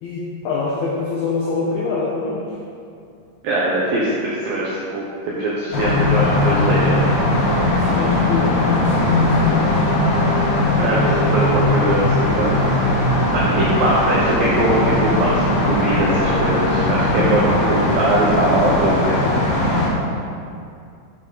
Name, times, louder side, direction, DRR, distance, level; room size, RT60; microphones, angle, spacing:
voice 1, 0.0-2.6 7.8-10.0, left 3 dB, 90° left, -4 dB, 2.2 m, -26 dB
voice 2, 3.4-7.0 10.8-12.5 13.3-19.2, right 1 dB, 80° right, -6 dB, 2.0 m, -21 dB
sound 1, 5.7-19.9, left 2 dB, 70° left, 3.2 m, -18 dB
12.5 x 4.5 x 4.0 m, 2.4 s
omnidirectional pair, 5.4 m